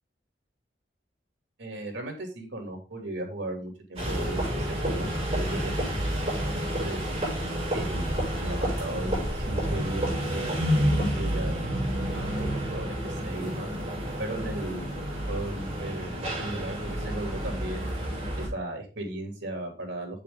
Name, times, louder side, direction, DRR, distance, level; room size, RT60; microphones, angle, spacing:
voice 1, 1.6-5.1 5.3-5.7 6.3-7.0 7.7-13.7 14.2-17.9 18.4-20.2, right 1 dB, 80° right, 3 dB, 2.8 m, -36 dB
sound 1, 4.0-18.5, equal, 30° right, 5.4 m, -29 dB
7.7 x 7.0 x 3.8 m, 0.34 s
head